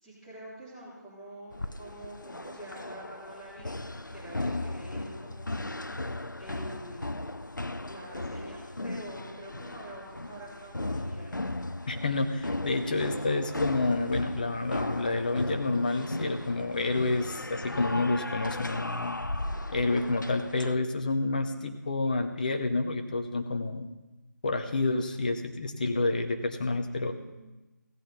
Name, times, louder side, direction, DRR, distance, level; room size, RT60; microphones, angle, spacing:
voice 1, 0.0-6.1 6.4-7.2 7.8-11.4 26.5-27.5, right 1 dB, ahead, -14 dB, 3.2 m, -47 dB
sound 1, 1.5-20.8, left 2 dB, 90° left, 0.6 m, -36 dB
voice 2, 11.9-19.2 19.7-23.9 24.4-27.1, left 3 dB, 25° left, 6 dB, 0.7 m, -29 dB
16.5 x 8.7 x 4.0 m, 1.1 s
figure-of-eight pair, 160°, 10 cm